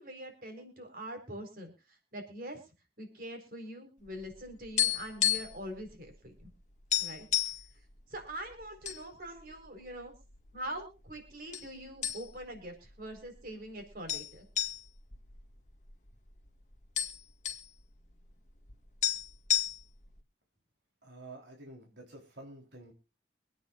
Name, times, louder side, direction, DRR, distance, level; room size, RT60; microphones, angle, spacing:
voice 1, 0.0-2.6 3.0-6.5 7.0-7.4 8.1-10.1 10.5-14.4, right 1 dB, 55° right, 5 dB, 4.3 m, -43 dB
sound 1, 4.2-5.7 5.9-6.1 6.5-6.6 6.9-7.7 8.3-9.0 9.4-9.5 10.2-10.8 11.5-11.7 12.0-12.6 12.9-13.0 14.1-16.1 16.4-16.5 16.7-17.7 18.7-18.8 19.0-20.1, left 11 dB, 45° left, 1.9 m, -31 dB
voice 2, 21.0-22.9, right 2 dB, 85° right, 1 dB, 3.7 m, -49 dB
25.0 x 9.2 x 2.5 m, 0.30 s
head